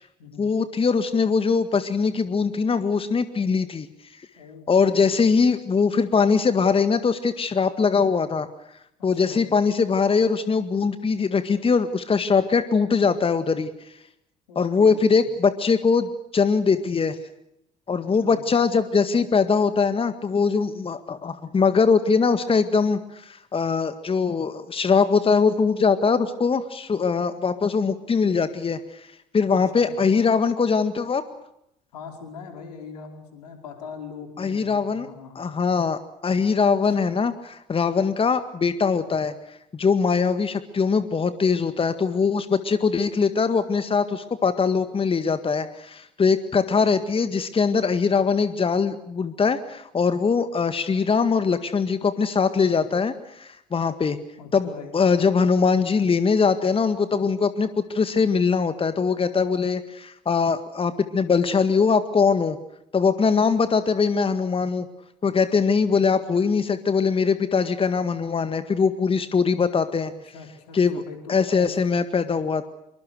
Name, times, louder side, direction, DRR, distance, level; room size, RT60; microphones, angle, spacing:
voice 1, 0.4-3.9 4.2-4.3 4.7-8.5 9.0-13.9 14.6-17.2 17.9-31.2 34.4-35.1 35.4-54.2 54.5-54.7 54.9-62.6 62.9-64.9 65.2-70.1 70.7-71.0 71.3-72.7, left 5 dB, 25° left, 11 dB, 1.8 m, -22 dB
voice 2, 4.4-5.3 9.0-9.5 14.5-15.3 18.0-18.5 29.5-30.0 31.9-35.4 54.4-54.9 69.9-71.7, left 5 dB, 75° left, 4 dB, 5.0 m, -42 dB
26.5 x 24.5 x 6.6 m, 0.79 s
figure-of-eight pair, 55°, 20 cm